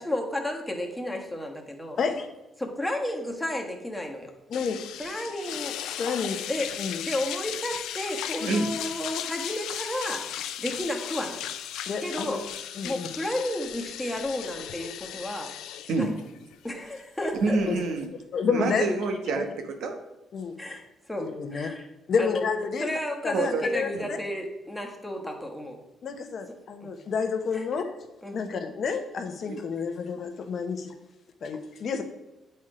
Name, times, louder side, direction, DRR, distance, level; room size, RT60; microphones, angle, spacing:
voice 1, 0.0-2.0 2.6-4.3 5.0-5.8 6.5-6.7 7.1-10.2 10.6-11.4 12.0-12.4 12.8-15.5 15.9-16.1 16.6-17.6 20.6-20.8 21.1-21.9 22.2-22.4 22.8-25.8 26.8-26.9 27.5-27.6 28.2-28.4, left 1 dB, 10° left, 2 dB, 1.4 m, -32 dB
sound 1, 4.5-18.1, left 10 dB, 85° left, 0.4 m, -36 dB
voice 2, 6.0-6.4 6.8-7.0 8.4-8.6 11.9-12.4 12.8-13.1 17.7-17.8 18.3-18.9 19.4-19.5 20.3-20.5 21.2-21.7 22.1-22.9 23.2-24.2 26.0-27.9 28.3-30.9 31.4-32.0, left 5 dB, 55° left, 7 dB, 0.9 m, -29 dB
voice 3, 17.4-18.1 18.5-20.0 23.3-23.6 24.0-24.1 29.5-29.6, right 3 dB, 80° right, 5 dB, 1.1 m, -27 dB
8.3 x 4.4 x 4.9 m, 1.0 s
cardioid pair, 90°, 0 cm